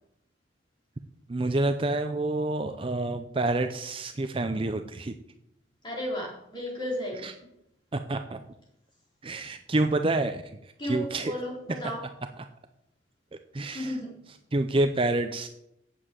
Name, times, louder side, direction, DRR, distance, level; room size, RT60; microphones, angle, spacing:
voice 1, 1.3-5.1 7.2-7.3 7.9-8.4 9.2-11.3 11.8-11.9 12.4-12.5 13.5-14.0 14.3-15.5, right 2 dB, 30° right, 8 dB, 0.5 m, -28 dB
voice 2, 5.8-7.3 10.8-12.0 13.6-14.1, left 1 dB, 25° left, -4 dB, 4.0 m, -34 dB
8.4 x 7.5 x 7.5 m, 0.79 s
head